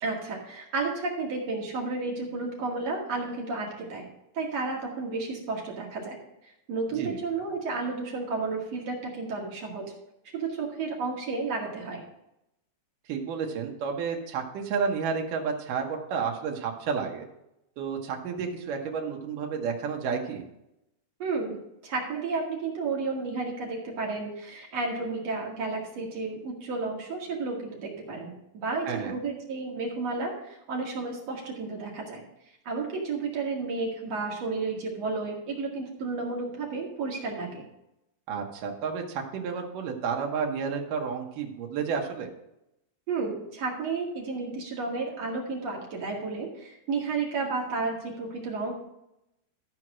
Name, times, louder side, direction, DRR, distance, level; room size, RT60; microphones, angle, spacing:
voice 1, 0.0-4.1 4.3-6.2 6.4-9.9 10.3-12.0 21.2-32.2 32.7-37.7 43.1-48.7, right 3 dB, 55° right, -1 dB, 3.0 m, -32 dB
voice 2, 13.1-17.2 17.8-20.5 28.9-29.1 38.3-42.3, right 6 dB, 80° right, 1 dB, 2.8 m, -31 dB
13.5 x 4.6 x 6.2 m, 0.85 s
omnidirectional pair, 3.7 m